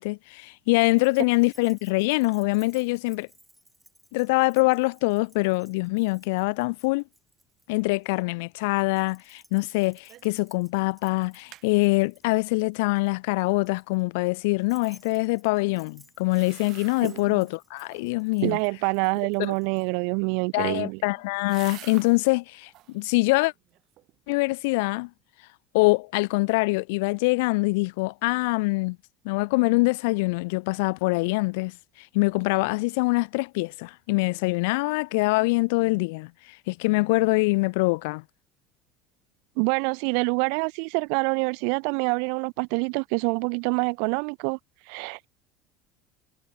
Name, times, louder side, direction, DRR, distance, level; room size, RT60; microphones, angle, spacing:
voice 1, 0.0-3.3 4.1-7.0 7.7-18.6 19.4-19.5 20.5-23.5 24.3-25.1 25.7-29.0 29.2-31.7 32.1-36.3 36.7-38.2, left 26 dB, 85° left, 0.5 m, -24 dB
Keys jangling, 0.8-8.2 8.9-19.9, right 1 dB, ahead, 7.4 m, -59 dB
sound 1, 10.1-10.4 10.8-10.9 11.2-11.7 16.2-17.4 17.8-18.3 20.3-22.2 22.6-23.0 23.5-24.2 24.5-24.6, right 15 dB, 50° right, 7.8 m, -48 dB
voice 2, 17.0-17.4 18.4-21.0 39.6-44.6 44.9-45.3, right 40 dB or more, 75° right, 0.9 m, -26 dB
cardioid pair, 135°, 0 cm